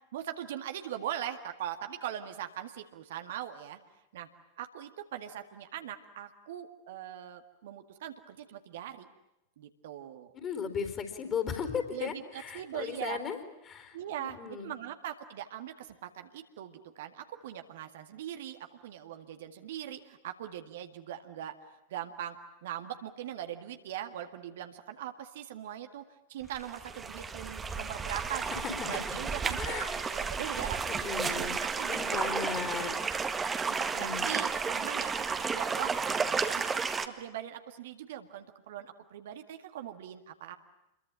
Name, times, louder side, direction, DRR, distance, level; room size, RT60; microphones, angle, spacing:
voice 1, 0.1-3.8 4.1-4.3 4.6-9.1 9.6-10.3 11.9-13.2 13.9-22.4 22.6-26.0 26.3-28.5 28.9-32.3 32.8-32.9 33.7-36.6 37.0-40.6, right 11 dB, 55° right, 7 dB, 1.9 m, -41 dB
voice 2, 10.3-13.4 13.7-14.7 28.8-28.9 29.6-29.9 30.4-31.5 31.9-32.9 33.3-33.4 33.9-34.3, left 7 dB, 25° left, 8 dB, 4.2 m, -36 dB
sound 1, 26.4-37.1, right 5 dB, 15° right, 1.7 m, -32 dB
28.0 x 22.5 x 8.9 m, 0.91 s
figure-of-eight pair, 90°, 0 cm